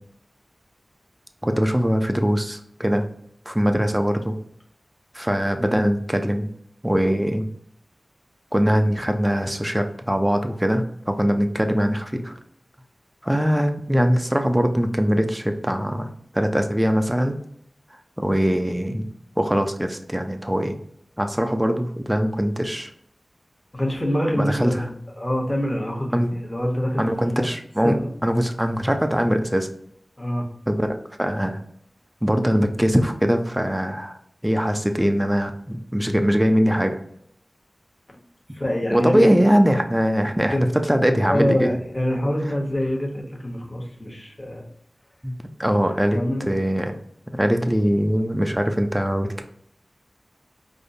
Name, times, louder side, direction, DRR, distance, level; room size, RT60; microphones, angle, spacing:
voice 1, 1.4-3.1 3.5-4.4 5.1-6.5 6.8-7.5 8.5-12.3 13.2-17.4 18.2-19.1 19.4-20.8 21.2-22.9 24.3-25.0 26.1-26.4 27.0-28.0 28.2-29.7 30.7-31.6 32.2-34.2 34.4-37.0 38.9-41.7 45.2-47.0 47.3-49.4, equal, 10° right, 6 dB, 0.4 m, -22 dB
voice 2, 23.7-24.9 25.2-27.1 27.4-27.5 27.8-28.1 30.2-30.5 38.1-38.2 38.5-39.3 40.5-40.6 41.3-44.6 46.1-46.6, equal, 20° left, 0 dB, 0.9 m, -25 dB
5.0 x 2.0 x 2.6 m, 0.69 s
wide cardioid pair, 65°, 0 cm